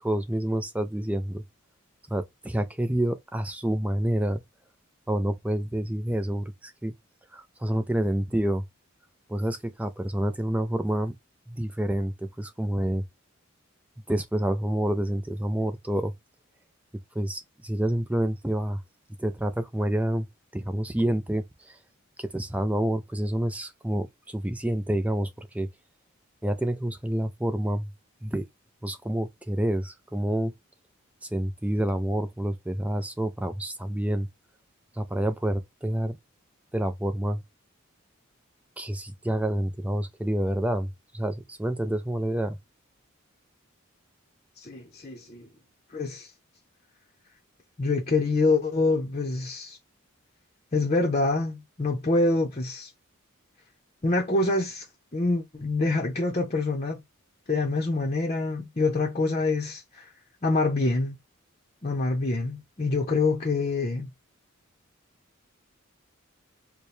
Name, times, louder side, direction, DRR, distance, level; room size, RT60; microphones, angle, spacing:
voice 1, 0.0-1.4 2.1-4.4 5.1-6.9 7.3-8.6 9.3-11.1 11.5-13.0 14.1-16.1 17.2-18.8 19.2-20.3 20.5-21.8 22.2-25.7 26.4-27.9 28.2-28.4 28.8-30.5 31.3-34.3 35.0-36.2 36.7-37.4 38.8-42.6, right 1 dB, 5° right, 0.4 m, -28 dB
voice 2, 44.6-45.5 45.9-46.3 47.8-49.8 50.7-52.9 54.0-54.9 55.1-57.0 57.5-60.1 60.4-61.2 61.8-64.1, left 3 dB, 30° left, 0.8 m, -26 dB
4.3 x 2.2 x 3.2 m
head